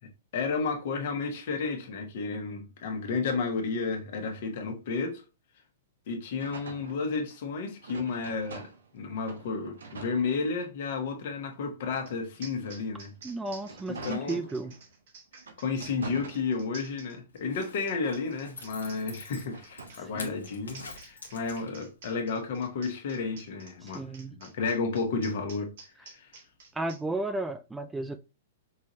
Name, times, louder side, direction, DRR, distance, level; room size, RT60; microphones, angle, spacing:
voice 1, 0.3-5.2 6.1-13.1 13.9-14.4 15.6-25.7 26.0-26.3, left 4 dB, 60° left, 1.2 m, -32 dB
sound 1, 6.4-9.0 9.3-10.9 11.5-14.9 15.4-17.0 17.4-20.1, right 4 dB, 85° right, 0.9 m, -47 dB
sound 2, 12.1-12.2 12.4-27.0, right 4 dB, 65° right, 1.5 m, -50 dB
voice 2, 13.2-14.7 20.0-20.3 23.8-24.4 26.7-28.2, right 2 dB, 10° right, 0.4 m, -34 dB
Zipper (clothing), 17.3-21.9 22.3-22.4, left 3 dB, 90° left, 1.1 m, -46 dB
5.4 x 2.6 x 3.0 m
hypercardioid pair, 125°, 0 cm